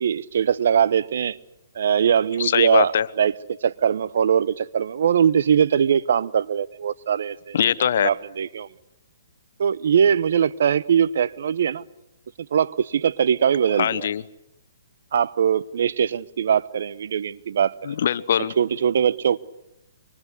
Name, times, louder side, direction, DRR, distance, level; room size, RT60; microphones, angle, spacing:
voice 1, 0.0-1.4 1.7-3.3 3.6-7.6 8.0-8.7 9.6-11.8 12.4-14.1 15.1-17.7 18.6-19.4, right 8 dB, 65° right, 0.9 m, -21 dB
voice 2, 2.4-3.1 7.5-8.1 13.8-14.2 17.9-18.5, left 8 dB, 60° left, 1.1 m, -21 dB
25.5 x 25.0 x 8.3 m
hypercardioid pair, 140°, 0 cm